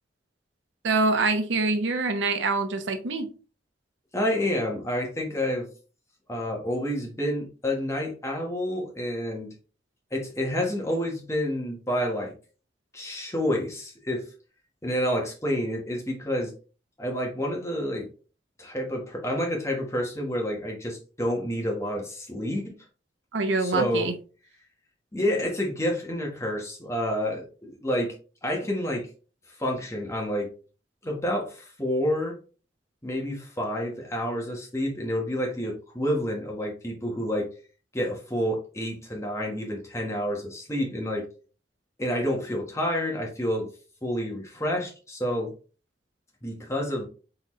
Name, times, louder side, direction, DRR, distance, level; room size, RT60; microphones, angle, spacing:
voice 1, 0.8-3.3 23.3-24.1, right 3 dB, 85° right, 0.8 m, -25 dB
voice 2, 4.1-5.7 6.3-9.5 10.1-12.3 12.9-14.2 14.8-16.5 17.0-18.1 18.6-22.8 23.6-24.1 25.1-28.1 28.4-29.1 29.6-30.5 31.0-32.4 33.0-37.5 37.9-41.3 42.0-43.7 44.0-45.5 46.4-47.1, equal, 15° left, 1.2 m, -29 dB
4.0 x 3.9 x 3.1 m
head